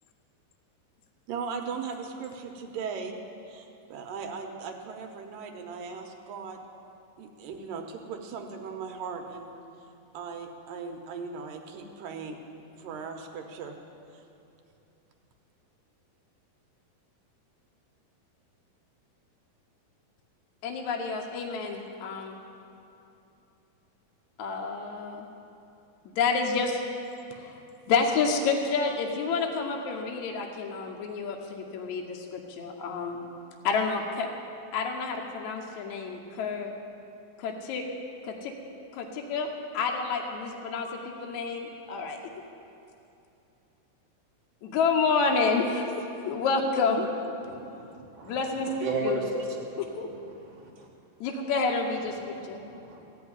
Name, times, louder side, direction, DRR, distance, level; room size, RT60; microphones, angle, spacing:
voice 1, 1.3-3.2 3.5-6.6 7.2-9.5 10.1-12.4 12.8-13.8 14.1-14.2, right 5 dB, 75° right, 4 dB, 2.4 m, -38 dB
voice 2, 20.6-22.4 24.4-25.3 26.1-26.8 27.3-27.6 27.9-33.2 33.6-34.3 34.7-36.7 37.4-37.8 38.2-38.5 38.9-39.5 39.7-42.2 44.6-47.1 48.2-48.7 49.0-49.2 49.8-50.1 51.2-52.6, left 4 dB, 70° left, 1 dB, 1.9 m, -29 dB
voice 3, 47.4-48.4 48.8-49.6 50.5-50.6 52.6-53.0, right 3 dB, 50° right, -2 dB, 2.3 m, -33 dB
15.5 x 5.4 x 9.6 m, 2.8 s
omnidirectional pair, 4.1 m